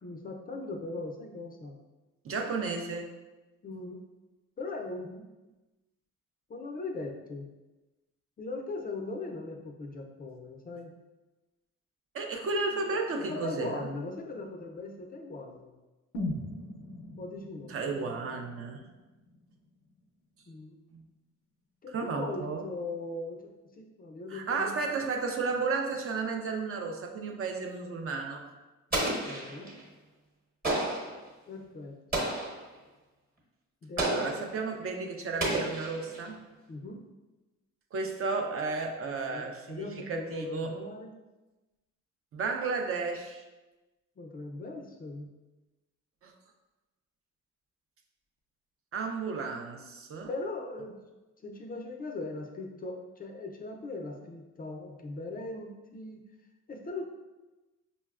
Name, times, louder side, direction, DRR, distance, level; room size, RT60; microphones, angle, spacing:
voice 1, 0.0-1.8 3.6-4.0 4.6-5.3 6.5-7.5 8.4-10.9 13.3-15.7 17.2-17.7 20.5-20.8 21.8-24.7 28.9-29.7 31.5-32.3 33.8-34.5 36.7-37.0 39.1-41.1 44.2-45.3 50.3-51.0 51.4-56.3 56.7-57.0, left 2 dB, 30° left, 2 dB, 0.4 m, -39 dB
voice 2, 2.2-3.1 12.1-13.9 17.7-18.8 20.9-21.0 21.9-22.7 24.3-28.4 34.0-36.4 37.9-40.7 42.3-43.4 46.2-46.3 48.9-50.3, right 4 dB, 45° right, 3 dB, 0.5 m, -33 dB
sound 1, 16.1-20.1 20.4-20.5, left 1 dB, 80° left, 0.5 m, -40 dB
Explosion, 28.9-29.8 30.6-31.2 32.1-32.7 34.0-34.5 35.4-36.3, right 1 dB, 30° right, 1.1 m, -31 dB
5.3 x 2.1 x 2.3 m, 1.1 s
cardioid pair, 90°, 30 cm